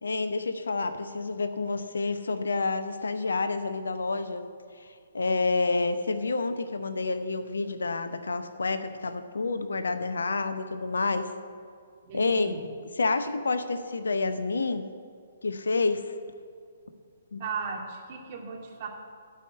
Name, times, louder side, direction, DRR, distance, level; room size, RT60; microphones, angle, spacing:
voice 1, 0.0-4.5 4.8-4.9 5.1-11.3 12.1-12.5 13.0-14.9 15.4-16.1 17.3-17.4, left 3 dB, 65° left, 10 dB, 0.7 m, -28 dB
voice 2, 12.0-12.6 17.4-18.9, right 5 dB, 40° right, 0 dB, 2.2 m, -36 dB
13.0 x 5.0 x 8.4 m, 2.2 s
figure-of-eight pair, 125°, 0 cm